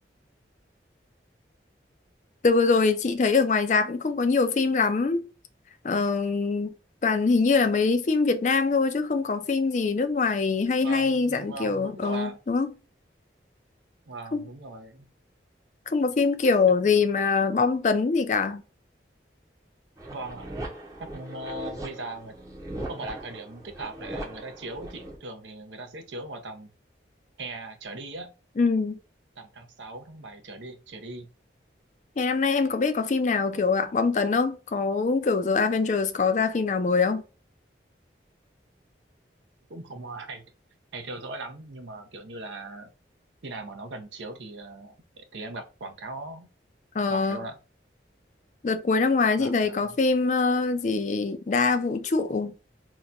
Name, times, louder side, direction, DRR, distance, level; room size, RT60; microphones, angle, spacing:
voice 1, 2.4-5.2 5.8-6.7 7.0-12.7 14.3-14.4 15.9-18.6 28.6-29.0 32.2-37.2 47.0-47.4 48.6-52.5, left 4 dB, 40° left, 0.4 m, -23 dB
voice 2, 10.8-12.4 14.1-15.1 16.8-16.9 20.1-20.6 21.0-22.4 22.9-26.7 27.4-28.3 29.4-31.3 39.7-40.4 40.9-42.9 43.4-46.5 47.1-47.6 49.4-50.0, right 2 dB, 85° right, 0.7 m, -39 dB
sound 1, 20.0-25.2, right 1 dB, 20° right, 0.6 m, -39 dB
2.8 x 2.2 x 3.7 m
head